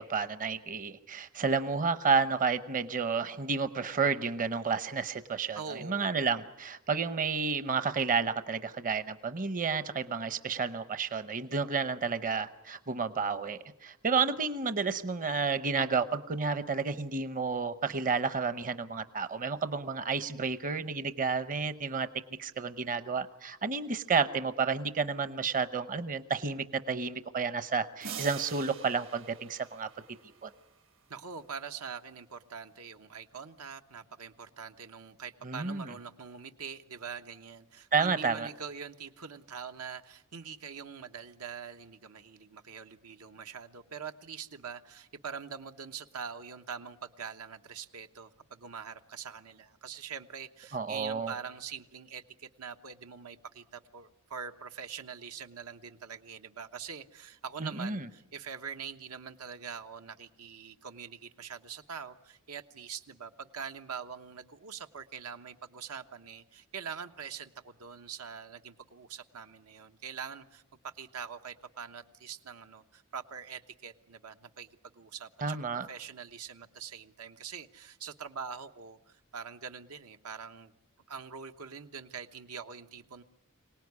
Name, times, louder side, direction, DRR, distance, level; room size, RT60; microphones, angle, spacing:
voice 1, 0.0-22.1 22.4-29.9 30.4-30.5 35.4-35.9 37.9-38.5 50.7-51.3 57.6-58.0 75.4-75.9, right 5 dB, 40° right, 12 dB, 0.8 m, -31 dB
voice 2, 5.5-6.2 31.1-74.7 74.9-75.6 75.9-80.7 81.1-83.2, right 6 dB, 85° right, 7 dB, 1.1 m, -44 dB
sound 1, 28.0-30.8, right 7 dB, 60° right, 1.3 m, -44 dB
25.0 x 18.5 x 9.6 m, 0.92 s
head